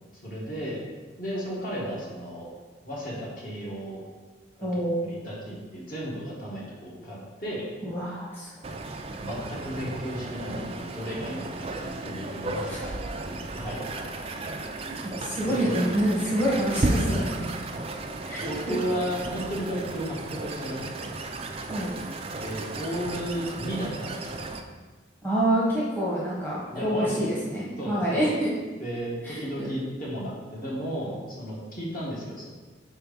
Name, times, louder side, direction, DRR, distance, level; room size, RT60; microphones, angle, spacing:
voice 1, 0.2-0.8 1.2-2.5 2.8-4.0 4.6-7.6 9.2-11.5 11.7-12.9 13.2-14.4 15.4-15.8 16.7-17.5 18.0-21.1 22.4-24.4 26.7-27.2 27.8-28.2 28.8-32.5, equal, 45° left, -5 dB, 1.6 m, -34 dB
voice 2, 4.6-5.1 7.9-8.5 14.8-16.9 18.3-18.7 21.7-21.9 25.2-28.5 29.2-29.7, right 1 dB, 10° left, -8 dB, 1.1 m, -27 dB
sound 1, 8.6-24.6, right 2 dB, 30° right, 0.4 m, -34 dB
4.5 x 4.5 x 5.3 m, 1.4 s
head